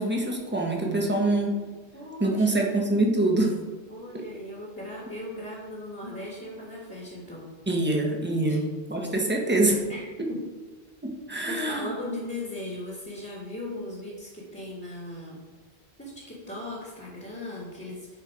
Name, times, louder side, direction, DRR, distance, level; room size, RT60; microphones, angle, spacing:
voice 1, 0.0-1.5 2.2-3.5 4.1-4.2 7.7-9.8 11.0-11.9, right 2 dB, 10° right, 0 dB, 1.1 m, -25 dB
voice 2, 1.0-1.6 1.9-2.8 3.9-7.5 8.5-8.6 9.9-10.4 11.5-15.5 16.0-18.1, left 1 dB, 10° left, -4 dB, 1.7 m, -38 dB
11.0 x 4.5 x 4.8 m, 1.4 s
omnidirectional pair, 1.1 m